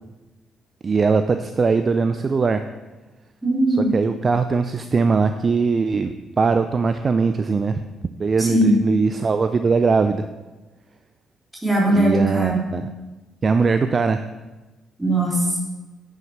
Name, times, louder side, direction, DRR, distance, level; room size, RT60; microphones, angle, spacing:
voice 1, 0.8-2.6 3.9-7.8 8.2-10.3 12.0-12.9 13.4-14.2, right 4 dB, 40° right, 9 dB, 0.4 m, -20 dB
voice 2, 3.4-3.9 8.4-8.8 11.6-12.6 15.0-15.6, right 1 dB, 15° right, -3 dB, 3.1 m, -19 dB
9.0 x 5.8 x 5.5 m, 1.2 s
cardioid pair, 90°, 0 cm